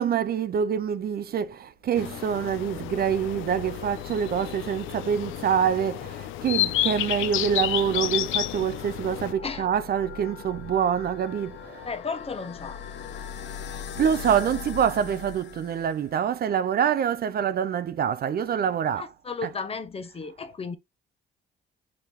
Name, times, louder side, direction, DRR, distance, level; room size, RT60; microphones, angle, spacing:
voice 1, 0.0-12.0 13.9-19.1 19.4-19.5, right 8 dB, 50° right, 0.5 m, -26 dB
sound 1, 2.0-9.3, left 14 dB, 80° left, 0.4 m, -31 dB
sound 2, 2.6-16.3, left 7 dB, 65° left, 0.8 m, -42 dB
voice 2, 11.8-12.8 19.0-20.8, left 4 dB, 30° left, 0.8 m, -34 dB
4.7 x 2.7 x 3.5 m
cardioid pair, 90°, 20 cm